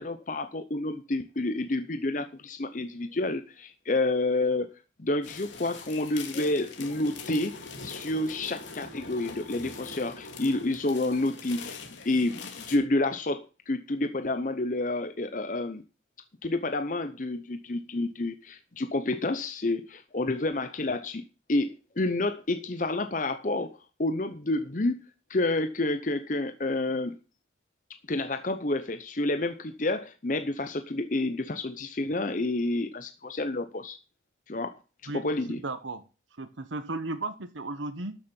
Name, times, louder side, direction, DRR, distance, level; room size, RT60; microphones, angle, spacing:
voice 1, 0.0-4.7 5.0-11.8 12.0-15.8 16.4-21.2 21.5-25.0 25.3-27.2 28.1-34.0 34.5-35.6, left 2 dB, 45° left, 9 dB, 0.8 m, -29 dB
sound 1, 5.2-12.8, left 4 dB, 80° left, 2.4 m, -42 dB
voice 2, 35.1-36.0 36.4-38.2, right 2 dB, 90° right, 10 dB, 1.2 m, -35 dB
12.5 x 6.8 x 5.4 m, 0.33 s
head